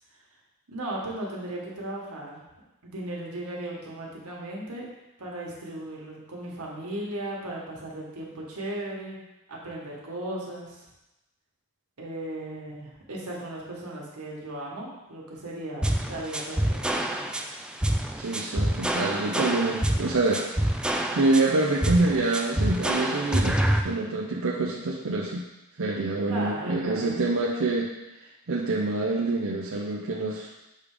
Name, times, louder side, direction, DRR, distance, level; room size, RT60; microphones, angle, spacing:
voice 1, 0.7-2.4 2.8-4.8 5.2-9.2 9.5-10.8 12.0-17.0 26.3-27.3, right 1 dB, 90° right, -3 dB, 1.6 m, -36 dB
sound 1, 15.8-23.8, right 1 dB, 5° right, 0.3 m, -26 dB
voice 2, 18.2-20.7 21.1-25.4 25.8-27.9 28.5-30.5, right 2 dB, 65° right, -4 dB, 0.7 m, -26 dB
6.7 x 3.5 x 5.0 m, 0.97 s
head